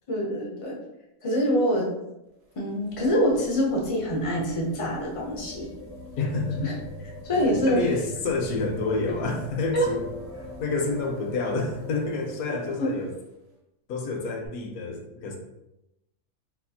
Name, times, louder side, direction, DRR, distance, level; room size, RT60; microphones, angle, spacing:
voice 1, 0.1-0.8 1.2-1.9 2.6-5.7 6.6-6.7 7.2-7.8 9.7-9.9 12.5-12.9, equal, 55° left, -2 dB, 0.3 m, -25 dB
sound 1, 2.3-13.2 14.4-14.5, left 2 dB, 40° right, 0.5 m, -43 dB
sound 2, 6.1-12.9, right 1 dB, 60° right, 1.1 m, -46 dB
voice 2, 6.2-6.7 7.3-10.0 10.6-13.1 13.9-15.4, left 3 dB, 70° left, 2 dB, 1.1 m, -28 dB
4.2 x 2.3 x 2.7 m, 0.91 s
omnidirectional pair, 1.6 m